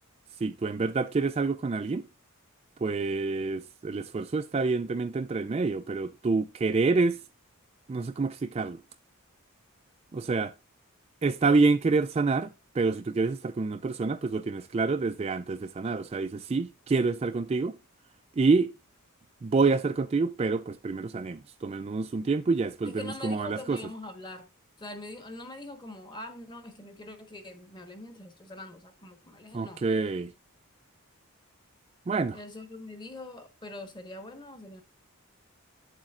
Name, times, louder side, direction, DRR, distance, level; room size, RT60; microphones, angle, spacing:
voice 1, 0.4-2.1 2.8-7.2 7.9-8.8 10.1-10.5 11.2-12.5 12.7-17.8 18.4-18.7 19.4-23.8 29.5-30.3 32.1-32.4, right 4 dB, 30° right, 0.3 m, -27 dB
voice 2, 22.8-24.5 24.8-29.8 32.3-34.8, left 2 dB, 20° left, 1.3 m, -43 dB
8.7 x 7.2 x 2.5 m
head